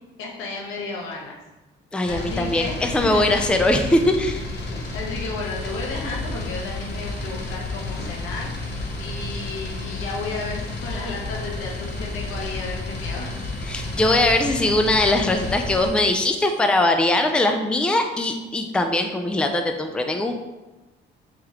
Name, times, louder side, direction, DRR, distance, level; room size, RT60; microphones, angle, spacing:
voice 1, 0.2-1.4 2.1-3.4 4.7-8.5 9.0-13.3, left 3 dB, 90° left, -1 dB, 0.9 m, -33 dB
voice 2, 1.9-4.4 13.6-20.3, left 2 dB, 5° left, 5 dB, 0.3 m, -21 dB
sound 1, 2.0-15.9, left 2 dB, 60° left, 0.8 m, -31 dB
sound 2, 5.4-16.8, left 1 dB, 35° right, 1.0 m, -52 dB
3.1 x 3.0 x 3.6 m, 1.1 s
cardioid pair, 90°, 20 cm